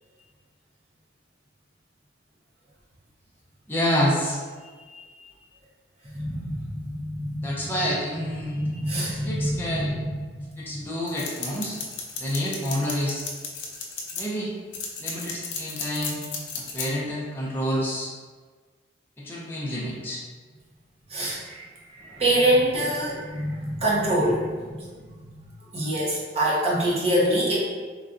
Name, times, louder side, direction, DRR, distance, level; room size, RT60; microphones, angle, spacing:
voice 1, 3.7-4.4 7.4-8.6 9.1-9.9 10.6-11.8 12.2-13.3 14.1-14.5 15.0-16.2 16.6-18.1 19.2-20.2, equal, 10° left, -6 dB, 0.5 m, -28 dB
voice 2, 4.6-5.0 6.1-7.6 8.4-10.1 10.7-10.9 21.1-21.7 22.0-24.8 25.7-27.6, right 1 dB, 30° right, -6 dB, 0.7 m, -25 dB
sound 1, 11.1-14.2 14.7-16.9, left 5 dB, 70° left, 0.5 m, -33 dB
3.8 x 2.2 x 2.5 m, 1.5 s
head